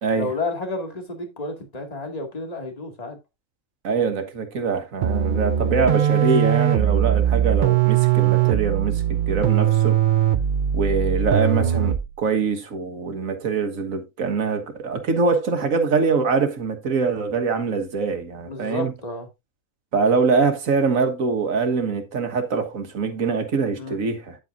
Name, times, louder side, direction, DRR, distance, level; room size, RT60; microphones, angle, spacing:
voice 1, 0.1-3.2 18.4-19.3 23.8-24.0, left 2 dB, 30° left, 2.2 m, -31 dB
voice 2, 3.8-10.0 10.7-18.9 19.9-24.4, right 4 dB, 75° right, 1.8 m, -23 dB
sound 1, 5.0-12.2, right 10 dB, 50° right, 0.6 m, -20 dB
9.8 x 8.0 x 2.5 m
omnidirectional pair, 1.4 m